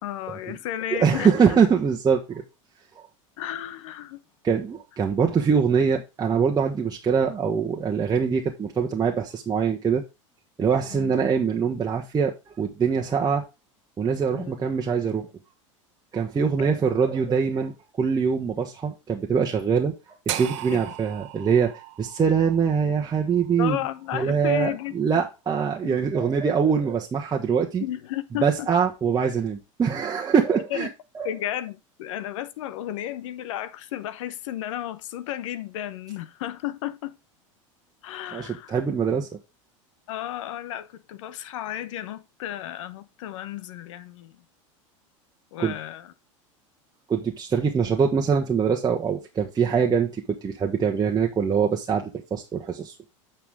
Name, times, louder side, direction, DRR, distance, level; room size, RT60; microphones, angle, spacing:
voice 1, 0.0-1.6 3.4-4.2 10.9-11.2 14.3-14.5 16.4-16.7 20.7-21.0 23.6-25.2 25.8-26.0 27.8-28.7 30.5-30.9 31.2-37.2 38.0-38.8 40.1-44.4 45.5-46.1, left 12 dB, 70° left, 1.1 m, -33 dB
voice 2, 0.9-2.4 4.4-10.0 10.6-13.4 14.0-15.3 16.1-17.7 18.0-19.9 20.3-21.7 22.0-23.8 24.1-27.8 28.4-30.9 31.1-31.3 38.3-39.3 45.6-45.7 47.1-53.1, right 6 dB, 25° right, 1.3 m, -23 dB
sound 1, 20.3-24.4, right 13 dB, 65° right, 1.1 m, -37 dB
8.6 x 5.7 x 3.6 m
hypercardioid pair, 85°, 17 cm